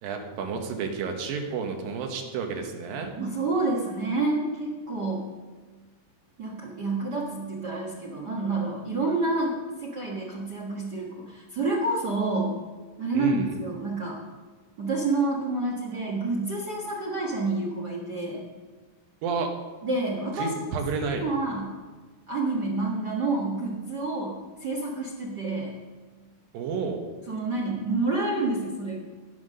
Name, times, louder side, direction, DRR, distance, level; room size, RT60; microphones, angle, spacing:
voice 1, 0.0-3.1 13.1-13.5 19.2-19.5 20.3-21.3 26.5-27.0, right 5 dB, 80° right, 3 dB, 3.0 m, -30 dB
voice 2, 3.1-5.3 6.4-12.6 13.0-14.2 14.8-18.4 19.8-20.5 21.1-21.7 22.3-25.7 27.3-29.0, right 2 dB, 60° right, -2 dB, 1.1 m, -28 dB
17.5 x 5.9 x 6.5 m, 1.4 s
omnidirectional pair, 4.1 m